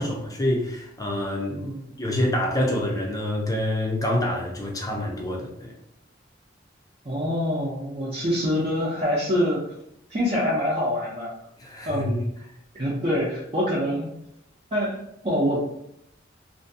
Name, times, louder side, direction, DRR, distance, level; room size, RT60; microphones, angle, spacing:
voice 1, 0.0-1.6 2.0-5.7 11.6-12.2, left 1 dB, 20° left, -1 dB, 0.5 m, -26 dB
voice 2, 7.0-9.6 10.1-11.3 11.9-12.3 12.8-14.1 14.7-15.6, equal, 30° right, -7 dB, 0.5 m, -25 dB
2.5 x 2.2 x 2.6 m, 0.76 s
head